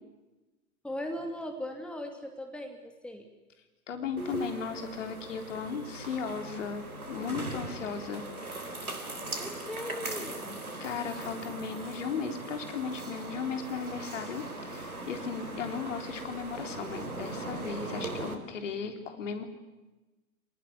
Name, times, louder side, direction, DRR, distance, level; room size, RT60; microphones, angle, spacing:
voice 1, 0.8-3.3 9.4-10.6, left 1 dB, ahead, 4 dB, 2.5 m, -39 dB
voice 2, 3.9-8.3 8.8-8.9 10.8-19.4, left 6 dB, 55° left, 6 dB, 3.7 m, -36 dB
sound 1, 4.2-18.3, right 2 dB, 80° right, 3.8 m, -39 dB
27.5 x 19.0 x 9.8 m, 1.1 s
figure-of-eight pair, 105°, 43 cm